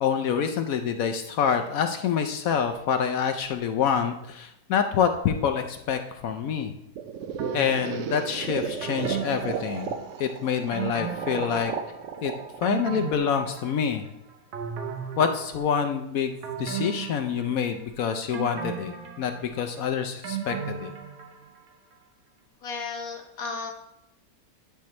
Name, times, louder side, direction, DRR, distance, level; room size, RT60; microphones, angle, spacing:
voice 1, 0.0-6.7 7.5-11.7 12.2-12.3 12.6-14.0 15.2-16.3 16.6-20.9, left 7 dB, 75° left, 6 dB, 0.8 m, -26 dB
sound 1, 7.0-13.8, right 6 dB, 90° right, 0.6 m, -34 dB
sound 2, 7.4-8.2 8.8-10.3 10.7-12.0 12.4-14.1 14.5-15.9 16.4-17.9 18.3-21.6 21.9-22.0, right 7 dB, 70° right, 1.6 m, -36 dB
voice 2, 22.6-23.7, left 4 dB, 55° left, 2 dB, 1.5 m, -34 dB
10.5 x 5.7 x 3.1 m, 0.84 s
omnidirectional pair, 2.0 m